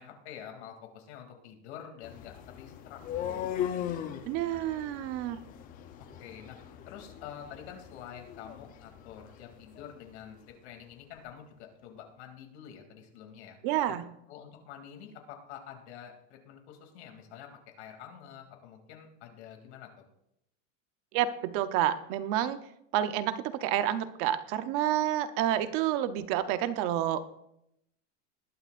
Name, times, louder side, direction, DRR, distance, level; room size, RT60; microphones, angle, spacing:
voice 1, 0.0-3.6 6.2-6.6 6.9-13.6 13.9-14.0 14.3-17.5 17.8-20.0, left 9 dB, 65° left, 3 dB, 2.8 m, -47 dB
sound 1, 2.0-10.0, left 10 dB, 25° left, 0.6 m, -39 dB
voice 2, 4.2-5.4 13.6-14.0 21.1-22.6 22.9-27.2, right 11 dB, 40° right, 12 dB, 0.8 m, -29 dB
20.0 x 12.0 x 2.5 m, 0.78 s
supercardioid pair, 165°, 36 cm